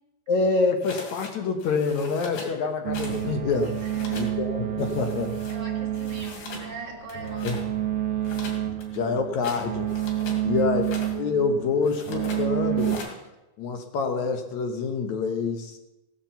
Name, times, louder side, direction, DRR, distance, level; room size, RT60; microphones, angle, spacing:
voice 1, 0.3-3.8 4.1-5.4 7.4-7.6 8.9-9.9 10.4-13.0 13.6-15.8, left 4 dB, 65° left, 5 dB, 2.2 m, -26 dB
sound 1, 0.8-1.3 1.6-2.6 2.9-3.3 3.5-4.3 4.8-5.6 5.9-6.7 7.1-7.6 8.2-10.4 10.8-11.2 11.8-12.4 12.8-13.2, left 4 dB, 80° left, 4.1 m, -40 dB
sound 2, 2.8-13.0, right 11 dB, 75° right, 1.2 m, -29 dB
voice 2, 3.8-4.4 5.5-7.6 10.3-10.7, right 3 dB, 10° right, -3 dB, 2.6 m, -41 dB
17.5 x 7.5 x 7.0 m, 0.99 s
omnidirectional pair, 4.0 m